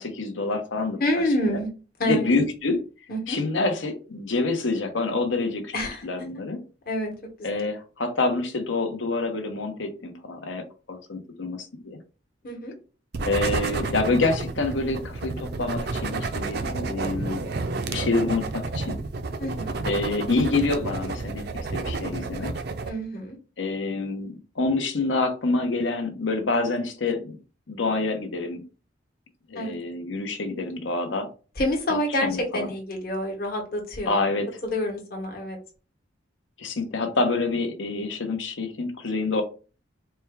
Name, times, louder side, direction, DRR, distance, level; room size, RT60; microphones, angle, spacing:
voice 1, 0.0-1.0 1.4-1.6 2.0-2.8 3.3-5.7 6.0-6.6 7.4-11.6 11.8-12.0 13.3-17.5 17.9-19.0 19.9-21.5 21.7-22.5 23.6-27.3 27.7-28.6 29.5-31.3 31.9-32.7 34.1-34.6 36.6-39.4, left 3 dB, 70° left, 5 dB, 0.8 m, -27 dB
voice 2, 1.0-1.7 2.0-2.3 3.1-3.4 5.7-6.1 6.9-7.1 7.4-7.6 12.4-12.7 19.4-19.7 22.8-23.4 29.5-29.8 31.6-34.1 34.6-35.6, left 1 dB, 45° left, 1 dB, 1.1 m, -27 dB
sound 1, 13.1-22.9, right 3 dB, 55° right, 0.4 m, -30 dB
4.3 x 2.3 x 3.4 m, 0.35 s
head